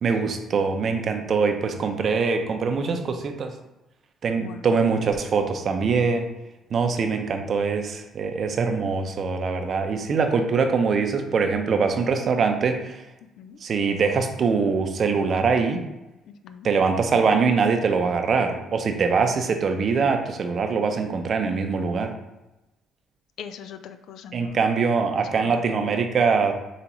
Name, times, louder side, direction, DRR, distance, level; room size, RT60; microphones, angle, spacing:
voice 1, 0.0-3.5 4.2-6.3 6.7-13.0 13.6-15.8 16.6-22.1 24.3-26.5, right 5 dB, 50° right, 6 dB, 0.6 m, -23 dB
voice 2, 4.3-4.7 7.0-7.1 13.4-13.6 16.3-16.7 23.4-24.6 25.3-25.5, left 8 dB, 75° left, 10 dB, 0.3 m, -41 dB
6.9 x 2.4 x 3.0 m, 0.98 s
cardioid pair, 85°, 0 cm